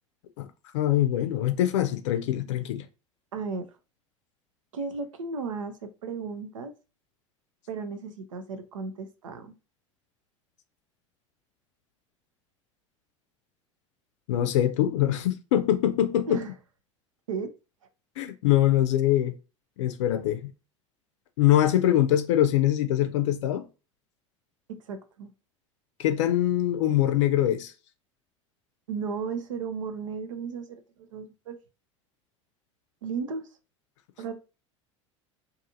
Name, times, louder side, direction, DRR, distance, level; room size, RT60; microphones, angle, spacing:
voice 1, 0.7-2.9 14.3-16.4 18.2-19.3 19.8-20.5 21.4-23.7 26.0-27.7, left 12 dB, 70° left, 0.5 m, -23 dB
voice 2, 3.3-3.7 4.7-6.7 7.7-9.5 16.3-16.5 17.3-17.5 24.7-25.3 28.9-31.6 33.0-33.4 34.2-34.4, right 5 dB, 80° right, 0.5 m, -34 dB
2.6 x 2.4 x 2.7 m
hypercardioid pair, 80°, 16 cm